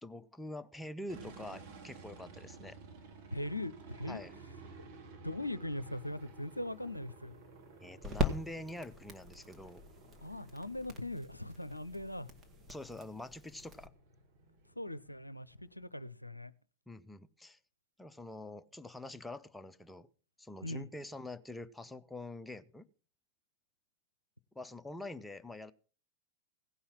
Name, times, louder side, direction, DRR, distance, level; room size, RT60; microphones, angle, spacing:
voice 1, 0.0-2.8 4.1-4.3 7.8-9.8 12.7-13.9 16.9-17.6 18.0-20.1 20.4-22.9 24.5-25.7, left 1 dB, 5° left, 0.6 m, -45 dB
sound 1, 1.1-15.9, right 3 dB, 50° right, 2.4 m, -55 dB
voice 2, 3.3-4.2 5.2-7.4 10.2-12.3 14.8-16.5 20.6-20.9, left 1 dB, 85° left, 0.5 m, -40 dB
sound 2, 5.9-13.9, equal, 20° right, 1.7 m, -42 dB
16.5 x 5.6 x 7.3 m
figure-of-eight pair, 90°, 0 cm